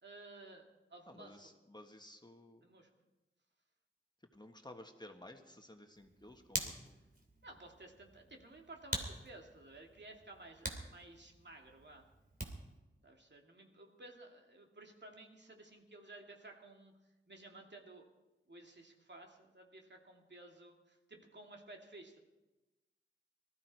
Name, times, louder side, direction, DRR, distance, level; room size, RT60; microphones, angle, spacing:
voice 1, 0.0-1.4 2.6-2.9 7.4-12.1 13.0-16.9 17.3-18.1 18.5-22.2, right 2 dB, 60° right, 1 dB, 2.5 m, -55 dB
voice 2, 1.1-2.7 4.3-7.0, left 1 dB, 20° left, 4 dB, 1.6 m, -55 dB
Hands, 5.9-12.8, right 1 dB, 45° right, 2.9 m, -46 dB
19.0 x 14.0 x 4.8 m, 1.1 s
cardioid pair, 45°, 21 cm